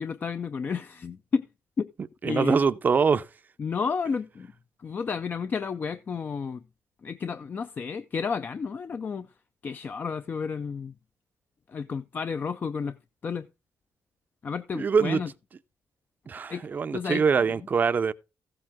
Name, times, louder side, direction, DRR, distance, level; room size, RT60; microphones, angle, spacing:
voice 1, 0.0-1.5 1.8-1.9 2.2-2.6 3.6-4.5 4.8-6.6 7.0-9.3 9.6-10.9 11.7-13.0 13.2-13.5 14.4-15.3 16.5-17.7, left 5 dB, 35° left, 0.5 m, -32 dB
voice 2, 2.2-3.2 14.7-15.2 16.3-18.1, right 5 dB, 30° right, 0.6 m, -23 dB
15.0 x 7.7 x 3.6 m
cardioid pair, 160°, 6 cm